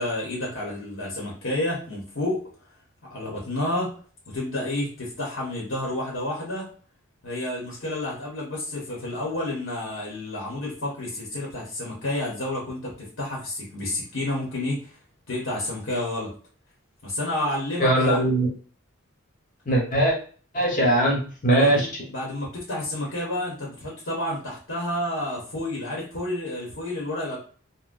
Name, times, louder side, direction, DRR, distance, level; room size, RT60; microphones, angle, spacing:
voice 1, 0.0-2.4 3.1-3.9 4.3-6.7 7.2-14.9 15.3-16.3 17.0-18.2 21.5-27.4, left 1 dB, 70° left, -4 dB, 1.0 m, -30 dB
voice 2, 17.8-18.5 19.7-20.2 20.5-21.9, right 1 dB, 35° left, -2 dB, 1.1 m, -20 dB
3.8 x 2.1 x 2.5 m, 0.41 s
head